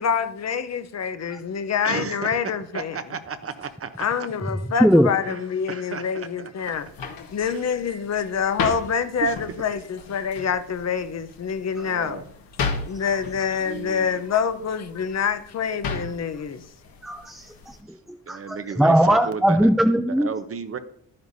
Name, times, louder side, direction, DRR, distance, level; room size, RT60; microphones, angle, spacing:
voice 1, 0.0-3.0 4.0-12.2 12.9-16.6, left 6 dB, 45° left, 0.8 m, -26 dB
voice 2, 1.8-2.3 2.7-4.0 5.3-5.4 5.7-6.5 7.5-7.6 9.2-9.3 11.8-12.3 13.6-14.2 18.3-19.6 20.2-20.8, right 6 dB, 40° right, 0.8 m, -33 dB
voice 3, 4.6-5.1 12.9-13.0 17.0-20.3, equal, ahead, 0.4 m, -20 dB
sound 1, 6.6-17.8, left 4 dB, 70° left, 1.5 m, -36 dB
11.0 x 9.5 x 2.7 m
cardioid pair, 100°, 37 cm